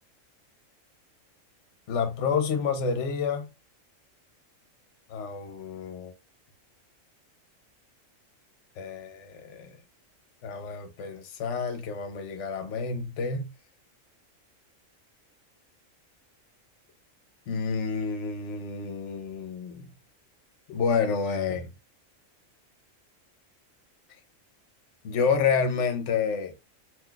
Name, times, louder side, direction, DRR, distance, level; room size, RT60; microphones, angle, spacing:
voice 1, 1.9-3.5 5.1-6.1 8.8-9.8 10.4-13.5 17.5-19.9 20.7-21.7 25.0-26.5, left 5 dB, 65° left, 0.9 m, -29 dB
2.6 x 2.3 x 3.7 m
omnidirectional pair, 1.4 m